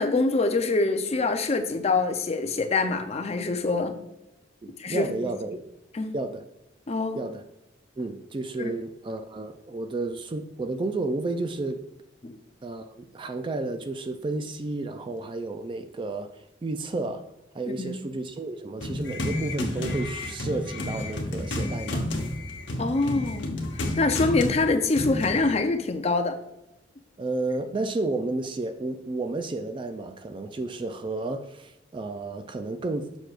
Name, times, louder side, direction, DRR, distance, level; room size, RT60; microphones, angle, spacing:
voice 1, 0.0-4.0 4.8-5.1 5.9-6.1 6.9-7.2 8.6-8.7 12.2-12.4 17.7-18.0 22.8-23.6 24.0-26.4, left 3 dB, 35° left, 0.5 m, -25 dB
voice 2, 4.6-5.6 6.1-6.4 7.2-7.4 8.0-11.8 12.6-17.2 17.5-22.4 27.2-33.1, right 2 dB, 25° right, 0.3 m, -32 dB
sound 1, 18.8-25.5, left 1 dB, 75° left, 1.0 m, -31 dB
6.8 x 6.0 x 2.4 m
head